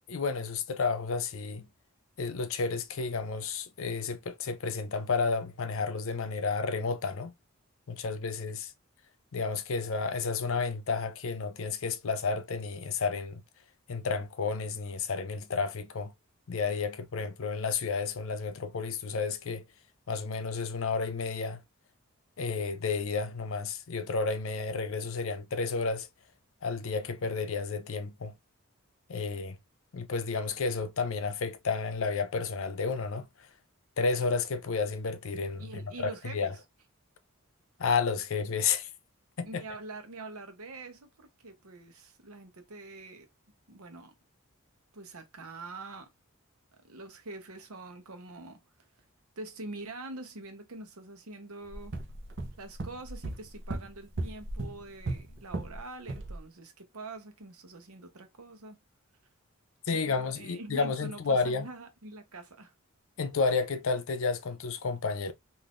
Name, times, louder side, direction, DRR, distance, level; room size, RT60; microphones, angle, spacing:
voice 1, 0.1-1.7 2.2-7.3 7.9-8.7 9.3-13.4 13.9-16.1 16.5-19.6 20.1-21.6 22.4-26.1 26.6-28.3 29.1-29.6 29.9-33.3 34.0-35.7 36.0-36.5 37.8-38.9 39.4-39.6 59.9-61.7 63.2-65.3, left 4 dB, 65° left, 0.5 m, -31 dB
voice 2, 35.6-36.5 39.4-43.3 43.7-44.1 44.9-46.1 46.8-48.6 49.4-51.9 52.6-58.8 60.1-62.7, right 2 dB, 85° right, 0.9 m, -45 dB
sound 1, 51.7-55.8 56.1-56.4, right 2 dB, 55° right, 0.6 m, -37 dB
3.5 x 2.6 x 2.4 m
head